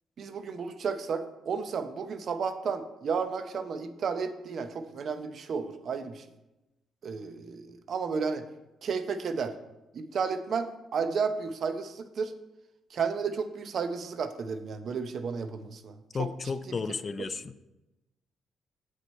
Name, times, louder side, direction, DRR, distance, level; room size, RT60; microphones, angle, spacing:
voice 1, 0.2-6.2 7.0-8.4 8.8-9.5 9.9-12.3 12.9-16.3 16.7-16.8, right 5 dB, 55° right, 10 dB, 0.7 m, -32 dB
voice 2, 16.1-17.6, left 5 dB, 35° left, 15 dB, 0.4 m, -33 dB
7.8 x 6.3 x 4.3 m, 0.97 s
cardioid pair, 90°, 0 cm